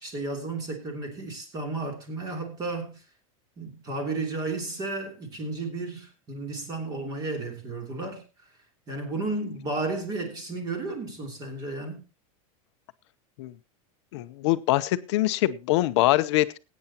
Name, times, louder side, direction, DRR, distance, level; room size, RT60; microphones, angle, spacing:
voice 1, 0.0-3.0 3.6-8.2 8.9-12.0, right 3 dB, 20° right, 3.1 m, -33 dB
voice 2, 14.1-16.6, left 17 dB, 55° left, 0.8 m, -23 dB
20.0 x 9.4 x 2.9 m
supercardioid pair, 175°, 17 cm